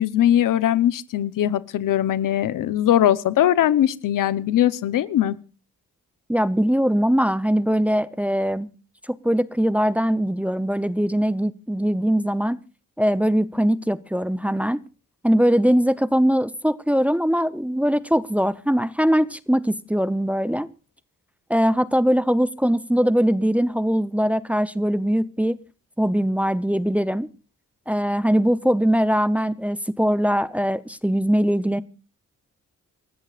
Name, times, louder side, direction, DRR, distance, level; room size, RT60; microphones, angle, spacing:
voice 1, 0.0-5.4, left 11 dB, 85° left, 0.9 m, -20 dB
voice 2, 6.3-8.7 9.1-12.6 13.0-14.8 15.2-20.7 21.5-25.6 26.0-27.3 27.9-31.8, equal, 5° right, 0.6 m, -21 dB
28.0 x 13.5 x 2.4 m
cardioid pair, 90°, 31 cm